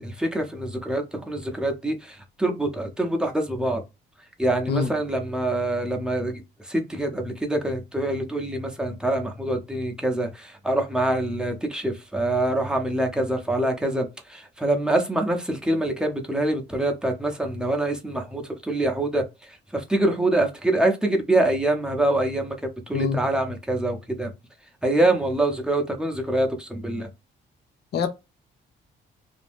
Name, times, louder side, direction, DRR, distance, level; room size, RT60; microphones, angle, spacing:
voice 1, 0.0-3.8 4.4-6.3 6.6-19.2 19.7-22.6 22.9-24.3 24.8-27.1, right 1 dB, 5° right, 0.7 m, -25 dB
voice 2, 4.7-4.9 22.9-23.2 27.9-28.1, left 6 dB, 55° left, 0.5 m, -24 dB
2.6 x 2.2 x 3.4 m
cardioid pair, 90°, 20 cm